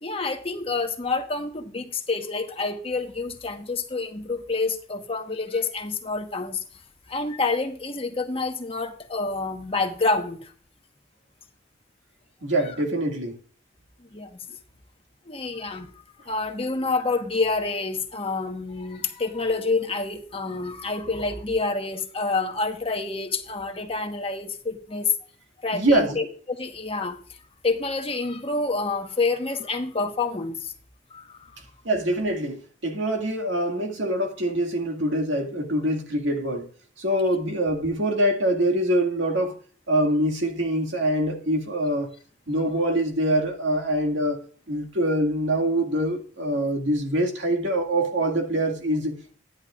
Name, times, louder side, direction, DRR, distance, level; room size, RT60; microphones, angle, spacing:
voice 1, 0.0-6.6 7.1-10.5 14.1-14.4 15.3-15.9 16.3-25.1 25.6-27.2 27.6-30.7 31.1-31.5, left 3 dB, 30° left, 1.2 m, -28 dB
voice 2, 12.4-13.4 25.7-26.2 31.8-36.7 37.0-39.6 39.9-42.1 42.5-49.4, right 1 dB, 80° right, 2.1 m, -24 dB
11.0 x 10.5 x 2.4 m
head